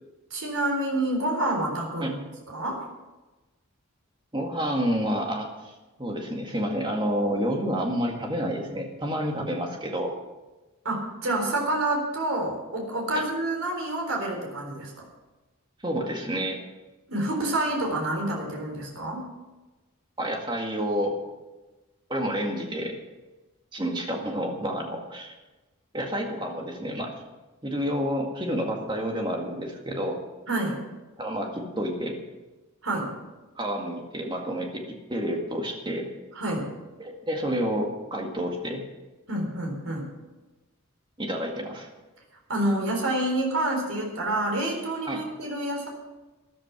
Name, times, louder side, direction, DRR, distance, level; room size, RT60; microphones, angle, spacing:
voice 1, 0.3-2.2 2.5-2.8 10.8-14.9 17.1-19.3 30.5-30.7 32.8-33.1 36.3-36.7 39.3-40.1 42.5-45.9, right 1 dB, 75° right, 1 dB, 4.0 m, -28 dB
voice 2, 4.3-5.7 6.0-10.1 13.1-13.2 15.8-16.6 20.2-21.2 22.1-23.0 23.7-25.3 25.9-27.1 27.6-30.2 31.2-32.2 33.6-36.1 37.0-38.8 41.2-41.9 45.1-45.2, equal, 20° right, 1 dB, 2.0 m, -29 dB
13.5 x 12.0 x 6.0 m, 1.1 s
head